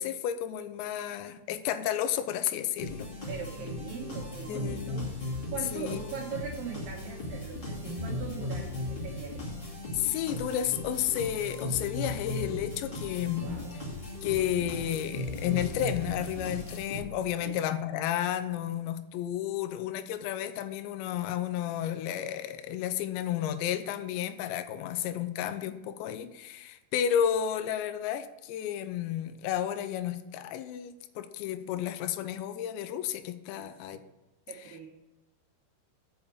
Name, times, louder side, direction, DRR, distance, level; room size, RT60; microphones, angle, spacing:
voice 1, 0.0-3.1 4.5-5.0 5.7-6.2 9.9-13.6 14.2-34.0 34.6-34.9, left 10 dB, 85° left, 10 dB, 2.7 m, -32 dB
sound 1, 2.8-17.3, left 2 dB, 30° left, 2.6 m, -37 dB
voice 2, 3.3-9.5 13.3-13.8 17.4-17.6 33.5-34.0 34.5-34.9, right 7 dB, 65° right, -3 dB, 3.0 m, -41 dB
7.2 x 6.6 x 7.0 m, 1.0 s
omnidirectional pair, 5.5 m